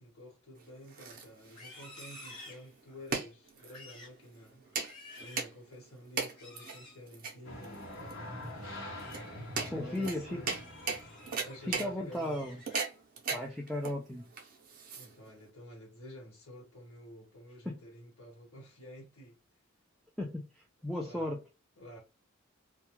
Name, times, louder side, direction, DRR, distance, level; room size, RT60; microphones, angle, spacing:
voice 1, 0.0-4.6 5.2-9.0 9.6-10.5 11.4-12.4 14.9-19.4 21.0-21.3 21.8-22.0, left 1 dB, 85° left, 1.2 m, -50 dB
sound 1, 0.6-15.5, right 5 dB, 40° right, 0.6 m, -39 dB
Livestock farm animals working animals, 1.4-3.1 3.6-4.2 4.6-5.6 6.3-7.0 8.7-9.3 9.7-10.0 10.4-11.6 12.0-13.0 13.4-13.8 14.2-14.6, left 2 dB, 25° left, 1.3 m, -52 dB
sound 2, 7.4-12.6, left 1 dB, 65° left, 0.9 m, -45 dB
voice 2, 9.7-10.4 11.7-12.6 13.3-14.3 17.7-17.8 20.2-21.4, left 1 dB, ahead, 0.3 m, -36 dB
2.3 x 2.2 x 2.9 m
head